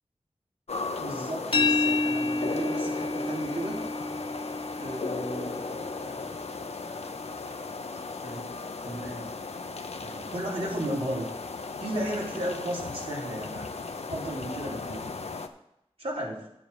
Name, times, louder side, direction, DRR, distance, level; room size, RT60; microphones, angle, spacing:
sound 1, 0.7-15.5, left 4 dB, 80° left, 0.8 m, -36 dB
voice 1, 1.0-3.8 4.8-6.3 6.9-7.0 8.2-8.5 8.8-9.4 10.0-11.3 11.8-13.7 14.1-15.3 16.0-16.4, right 1 dB, 65° right, -4 dB, 3.6 m, -35 dB
sound 2, 1.5-7.3, left 3 dB, 55° left, 1.6 m, -30 dB
10.5 x 7.5 x 5.4 m, 0.80 s
wide cardioid pair, 80°, 11 cm